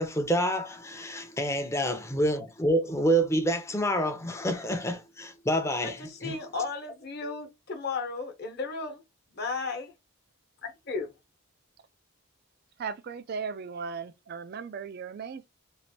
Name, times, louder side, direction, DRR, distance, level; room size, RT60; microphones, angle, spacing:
voice 1, 0.0-6.4, right 1 dB, 15° left, 0.6 m, -28 dB
voice 2, 6.0-9.0 9.3-9.9 10.6-11.1, left 4 dB, 50° left, 0.9 m, -34 dB
voice 3, 12.8-15.5, right 5 dB, 50° right, 0.3 m, -37 dB
3.1 x 2.5 x 2.7 m
head